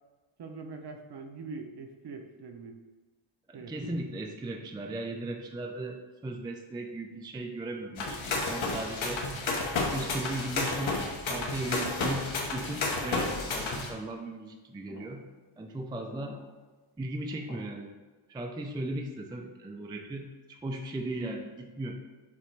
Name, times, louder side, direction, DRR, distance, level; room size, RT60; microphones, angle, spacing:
voice 1, 0.4-2.8 3.5-3.9, right 4 dB, 50° right, 4 dB, 0.8 m, -43 dB
voice 2, 3.5-9.2 9.8-11.0 11.3-15.2 15.6-16.4 17.0-17.9 18.3-21.9, right 2 dB, 10° right, 3 dB, 0.3 m, -37 dB
sound 1, 8.0-13.9, left 3 dB, 70° left, 1.2 m, -31 dB
sound 2, 11.4-11.8 12.5-13.2 13.6-14.0 14.9-15.2 16.1-16.6 17.3-17.7, left 2 dB, 35° left, 1.3 m, -50 dB
7.3 x 3.0 x 4.5 m, 1.3 s
wide cardioid pair, 135°, 50 cm